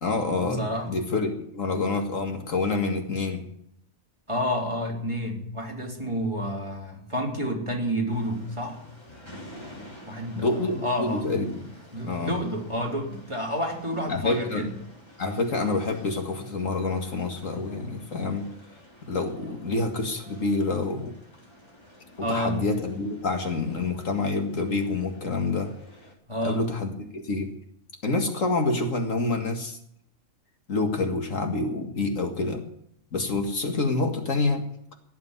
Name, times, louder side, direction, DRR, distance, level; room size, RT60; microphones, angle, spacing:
voice 1, 0.0-3.4 10.3-11.7 12.0-12.4 14.1-14.7 15.2-18.5 19.0-21.1 22.2-25.7 26.4-27.6 28.0-29.8 30.7-32.6 33.1-34.6, left 3 dB, 65° left, 4 dB, 2.2 m, -27 dB
voice 2, 0.6-0.9 4.3-8.8 10.1-11.3 11.9-14.7 22.2-22.6 26.3-26.6, equal, 20° right, 0 dB, 3.2 m, -29 dB
sound 1, 8.1-26.1, left 1 dB, 20° left, 3.7 m, -50 dB
17.5 x 7.2 x 9.7 m, 0.72 s
omnidirectional pair, 1.4 m